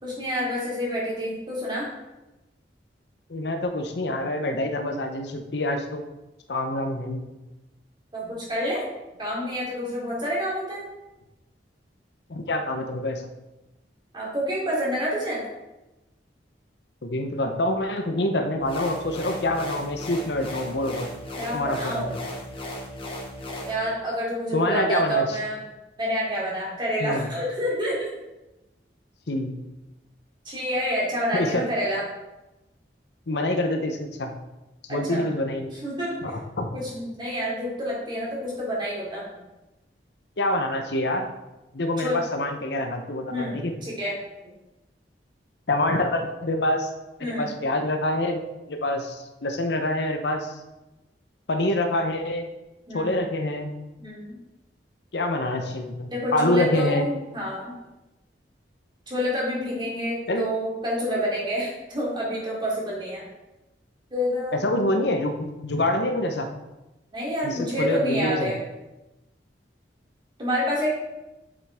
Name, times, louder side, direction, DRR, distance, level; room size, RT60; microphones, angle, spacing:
voice 1, 0.0-1.9 8.1-8.8 9.2-10.8 14.1-15.4 21.4-22.2 23.6-25.6 26.0-28.1 30.4-32.0 34.9-35.2 35.8-36.1 36.7-39.3 42.0-42.2 43.3-44.2 47.2-47.6 52.9-53.2 54.0-54.4 56.1-57.7 59.1-63.2 64.1-64.9 67.1-68.6 70.4-70.9, equal, 25° right, -5 dB, 3.1 m, -28 dB
voice 2, 3.3-6.0 6.5-7.2 12.3-13.3 17.0-21.1 21.5-22.2 24.5-25.4 27.0-27.3 29.3-29.5 31.3-31.6 33.3-34.3 34.9-35.7 36.2-36.7 40.4-41.3 41.7-43.8 45.7-46.9 47.2-48.4 48.7-50.5 51.5-52.5 52.9-53.7 55.1-57.1 60.3-60.5 64.6-66.5 67.4-68.5, left 1 dB, 70° left, 5 dB, 0.8 m, -26 dB
sound 1, 18.6-23.7, left 1 dB, 30° left, 1.6 m, -36 dB
7.6 x 7.5 x 3.6 m, 1.0 s
head